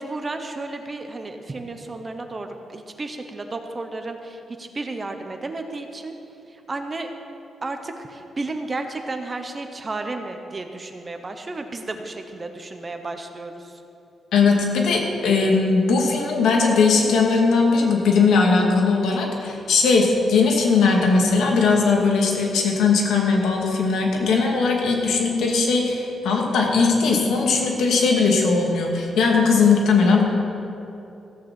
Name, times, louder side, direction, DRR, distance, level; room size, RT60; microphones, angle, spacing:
voice 1, 0.0-6.1 6.5-7.1 7.6-13.8, right 2 dB, 25° right, 6 dB, 0.9 m, -33 dB
voice 2, 14.3-30.2, left 4 dB, 85° left, 0 dB, 2.2 m, -19 dB
15.0 x 7.2 x 7.5 m, 2.8 s
wide cardioid pair, 165°, 0 cm